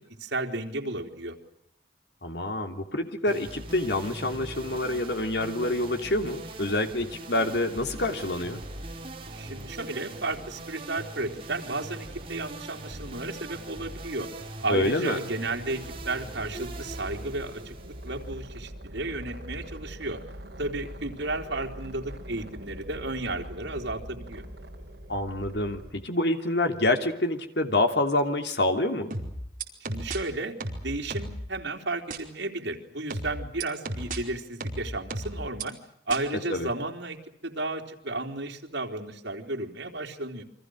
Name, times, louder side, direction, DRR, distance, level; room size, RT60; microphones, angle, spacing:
voice 1, 0.2-1.4 9.3-14.3 14.6-20.2 20.6-24.4 29.9-30.5 30.8-35.8 36.1-37.2 37.4-40.4, right 2 dB, 90° right, 2 dB, 3.7 m, -33 dB
voice 2, 2.2-8.7 14.7-15.2 25.1-29.2 36.5-36.7, left 1 dB, 70° left, 7 dB, 3.1 m, -27 dB
sound 1, 3.3-18.7, right 2 dB, 30° right, 5.1 m, -41 dB
sound 2, 15.8-25.9, equal, 60° right, 5.6 m, -42 dB
sound 3, 29.1-30.2 30.6-31.4 32.1-32.2 33.1-34.2 34.6-35.6 36.1-36.2, right 2 dB, 45° right, 4.9 m, -33 dB
29.5 x 24.5 x 6.4 m, 0.70 s
head